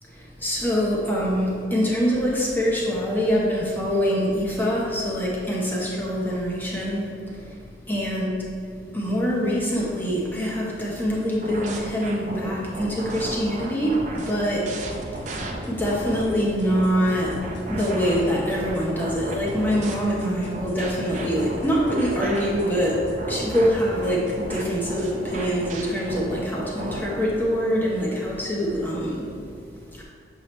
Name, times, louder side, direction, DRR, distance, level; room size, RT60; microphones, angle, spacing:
voice 1, 0.0-8.3 8.9-30.0, equal, 10° left, -4 dB, 1.0 m, -25 dB
sound 1, 11.4-16.2 16.7-19.9 20.5-27.2, right 1 dB, 40° right, 0.6 m, -34 dB
sound 2, 14.3-24.8, equal, 90° left, 1.4 m, -40 dB
7.1 x 4.8 x 3.2 m, 2.4 s
head